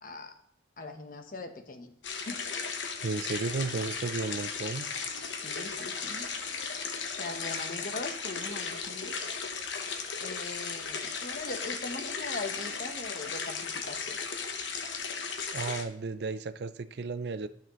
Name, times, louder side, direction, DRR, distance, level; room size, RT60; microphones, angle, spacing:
voice 1, 0.0-0.3 0.8-1.9 2.3-2.4 5.3-6.3 7.2-9.3 10.2-14.2, left 3 dB, 45° left, 6 dB, 0.9 m, -40 dB
sound 1, 2.0-15.8, left 5 dB, 75° left, 0.9 m, -36 dB
voice 2, 3.0-4.9 15.5-17.5, right 4 dB, 60° right, 13 dB, 0.4 m, -34 dB
12.5 x 5.9 x 3.0 m, 0.70 s
head